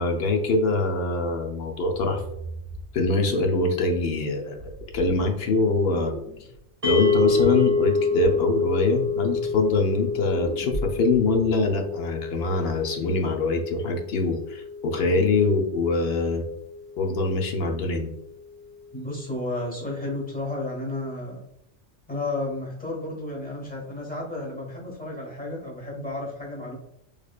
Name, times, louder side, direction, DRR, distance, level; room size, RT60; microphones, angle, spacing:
voice 1, 0.0-2.2 2.9-6.1 6.8-16.4 17.0-18.1, left 3 dB, 60° left, 3 dB, 0.8 m, -24 dB
sound 1, 1.7-4.1 4.6-6.6 6.9-11.7, equal, 80° left, 1.4 m, -37 dB
sound 2, 6.8-17.1, left 4 dB, 35° right, 0.8 m, -28 dB
voice 2, 18.9-21.4 22.1-26.8, left 2 dB, 10° left, -4 dB, 1.1 m, -32 dB
3.3 x 3.1 x 2.3 m, 0.80 s
omnidirectional pair, 1.2 m